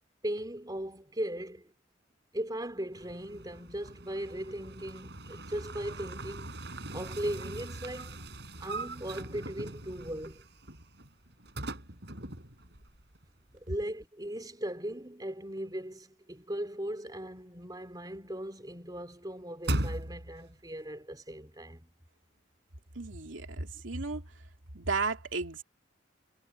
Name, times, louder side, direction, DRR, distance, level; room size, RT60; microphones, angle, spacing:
voice 1, 0.2-1.7 2.3-8.2 8.6-10.4 13.5-21.9, right 1 dB, 20° right, 3.7 m, -38 dB
sound 1, 2.9-13.2 13.5-13.6 19.6-20.5, right 1 dB, 60° right, 5.6 m, -40 dB
voice 2, 22.9-24.2 24.7-25.6, right 4 dB, 90° right, 2.6 m, -34 dB
head